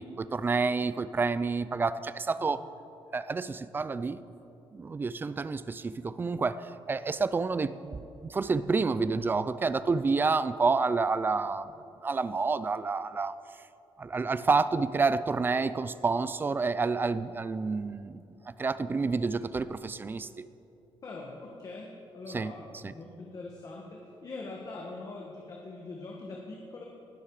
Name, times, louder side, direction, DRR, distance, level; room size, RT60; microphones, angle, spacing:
voice 1, 0.0-2.6 3.1-4.2 4.7-11.7 12.0-13.4 14.0-20.5 22.3-22.5 22.8-22.9, right 4 dB, 20° right, 15 dB, 0.4 m, -29 dB
voice 2, 21.0-26.8, left 3 dB, 40° left, -1 dB, 1.6 m, -43 dB
19.0 x 12.5 x 4.9 m, 2.8 s
cardioid pair, 160°, 10 cm